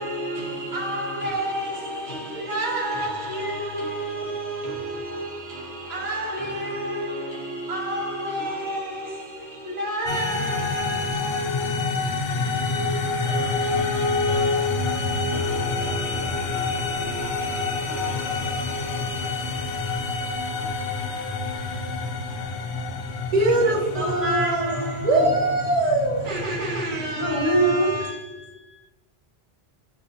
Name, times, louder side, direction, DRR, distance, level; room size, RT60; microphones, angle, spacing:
voice 1, 0.0-22.8 23.5-25.1, equal, 80° right, 1.3 m, -31 dB
sound 1, 10.1-28.0, left 4 dB, 75° left, 0.8 m, -29 dB
voice 2, 23.3-28.1, right 2 dB, 45° right, 0.6 m, -24 dB
voice 3, 23.9-25.3 27.1-28.8, right 1 dB, 25° left, 0.8 m, -26 dB
6.2 x 2.5 x 2.7 m
omnidirectional pair, 1.1 m